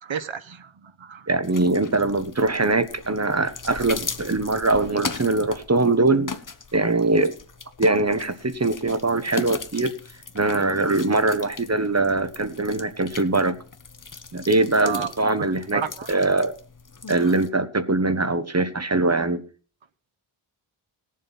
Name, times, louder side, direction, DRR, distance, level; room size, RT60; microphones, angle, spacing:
voice 1, 0.0-1.3 14.8-15.1 15.7-16.1, right 7 dB, 65° right, 1.1 m, -31 dB
voice 2, 1.3-6.4 6.7-7.3 7.8-9.9 10.3-13.6 14.3-15.8 16.1-16.6 17.1-19.4, right 2 dB, 30° right, 1.2 m, -22 dB
sound 1, 1.4-17.5, left 4 dB, 40° left, 1.2 m, -39 dB
19.5 x 7.6 x 4.1 m
wide cardioid pair, 70°, 50 cm